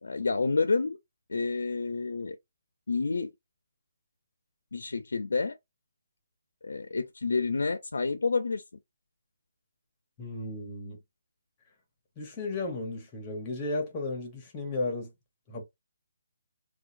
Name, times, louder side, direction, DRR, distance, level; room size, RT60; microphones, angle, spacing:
voice 1, 0.0-1.0 1.3-2.4 2.9-3.3 4.7-5.5 6.6-8.6, left 4 dB, 90° left, 0.5 m, -29 dB
voice 2, 10.2-11.0 12.2-15.1 15.5-15.6, left 2 dB, 15° left, 0.9 m, -34 dB
4.5 x 2.3 x 2.6 m
hypercardioid pair, 175°, 0 cm